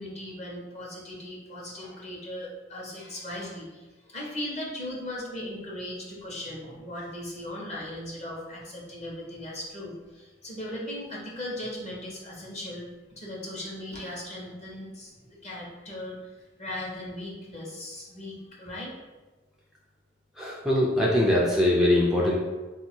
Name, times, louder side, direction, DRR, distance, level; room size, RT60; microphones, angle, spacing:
voice 1, 0.0-12.9 13.2-18.9, left 1 dB, 35° left, -4 dB, 1.1 m, -38 dB
voice 2, 20.4-22.4, left 1 dB, 5° right, -5 dB, 0.5 m, -22 dB
4.0 x 2.7 x 4.4 m, 1.2 s
head